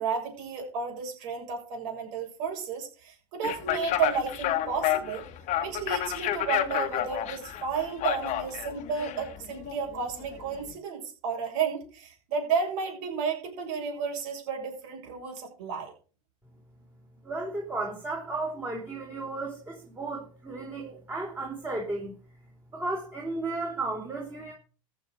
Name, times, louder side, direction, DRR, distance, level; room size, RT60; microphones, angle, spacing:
voice 1, 0.0-5.3 5.6-15.9, right 6 dB, 60° right, 1 dB, 7.2 m, -32 dB
sound 1, 3.4-10.7, left 13 dB, 45° left, 1.7 m, -31 dB
voice 2, 17.2-22.1 22.7-24.5, right 2 dB, 15° right, -1 dB, 4.5 m, -34 dB
14.5 x 7.1 x 6.4 m, 0.38 s
hypercardioid pair, 95°, 18 cm